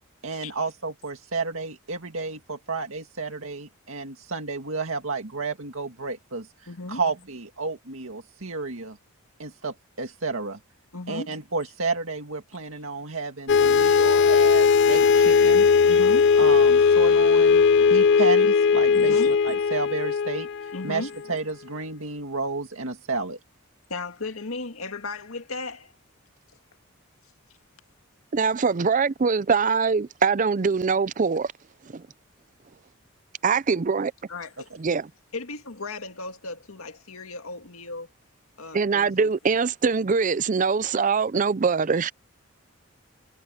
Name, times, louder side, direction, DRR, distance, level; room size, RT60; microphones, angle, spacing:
voice 1, 0.2-6.5 6.9-9.0 9.4-10.6 11.1-15.7 16.4-23.4, right 3 dB, 75° right, 2.0 m, -31 dB
voice 2, 6.7-7.0 10.9-11.4 15.8-16.3 18.9-19.3 20.7-21.1 23.9-25.9 34.3-34.7 35.3-38.1 38.6-39.3, left 3 dB, 80° left, 2.1 m, -36 dB
sound 1, 13.5-21.2, left 5 dB, 55° left, 0.5 m, -18 dB
voice 3, 28.3-31.4 31.9-32.0 33.4-34.1 34.8-35.1 38.7-42.1, right 5 dB, 35° right, 0.4 m, -23 dB
head